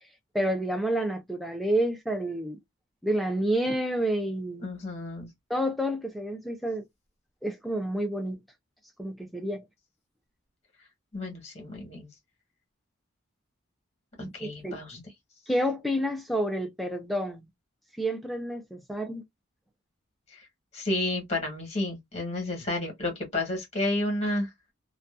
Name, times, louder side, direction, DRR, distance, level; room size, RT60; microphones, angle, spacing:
voice 1, 0.3-2.6 3.0-4.7 5.5-6.8 7.4-8.4 9.0-9.6 14.2-14.8 15.5-17.5 18.0-19.2, right 1 dB, ahead, 0.4 m, -29 dB
voice 2, 4.6-5.3 11.1-12.1 14.2-15.1 20.3-20.5 20.7-24.5, left 2 dB, 30° left, 1.1 m, -31 dB
2.6 x 2.2 x 2.3 m
head